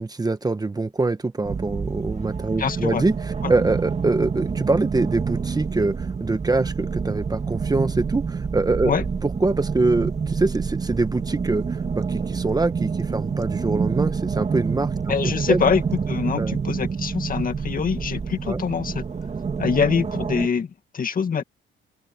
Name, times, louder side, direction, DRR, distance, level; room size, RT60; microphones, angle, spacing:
voice 1, 0.0-3.1 3.5-9.0 9.2-14.9 15.2-15.7 16.4-16.6 18.5-18.6, right 3 dB, 20° right, 1.4 m, -24 dB
sound 1, 1.4-20.5, right 5 dB, 35° right, 2.0 m, -27 dB
voice 2, 2.6-3.0 3.4-3.5 8.8-9.0 15.1-15.8 16.1-19.0 19.6-21.4, left 6 dB, 45° left, 2.1 m, -24 dB
open air
cardioid pair, 90°, 20 cm